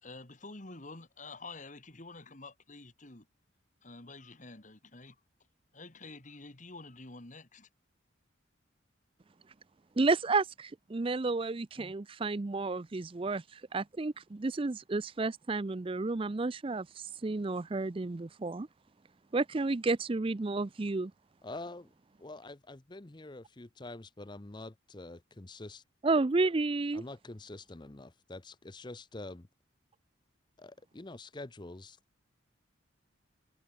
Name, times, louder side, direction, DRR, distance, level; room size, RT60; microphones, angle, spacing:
voice 1, 0.0-3.3 3.8-5.2 5.7-7.7, left 3 dB, 40° left, 2.1 m, -48 dB
voice 2, 10.0-18.7 19.3-21.1 26.0-27.0, right 3 dB, 25° right, 0.5 m, -31 dB
voice 3, 21.4-21.9 22.2-25.8 26.9-29.5 30.6-32.0, left 2 dB, 20° left, 0.7 m, -46 dB
head